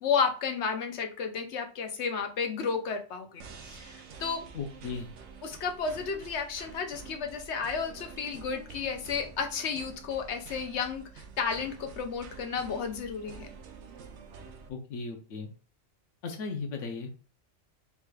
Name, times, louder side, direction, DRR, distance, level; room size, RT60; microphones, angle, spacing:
voice 1, 0.0-4.5 5.4-13.5, left 6 dB, 70° left, 5 dB, 1.0 m, -32 dB
sound 1, 3.4-14.7, right 5 dB, 70° right, 0.9 m, -48 dB
voice 2, 4.5-5.1 14.7-15.5 16.2-17.1, left 4 dB, 90° left, 4 dB, 1.0 m, -36 dB
4.7 x 3.3 x 2.3 m, 0.36 s
omnidirectional pair, 1.2 m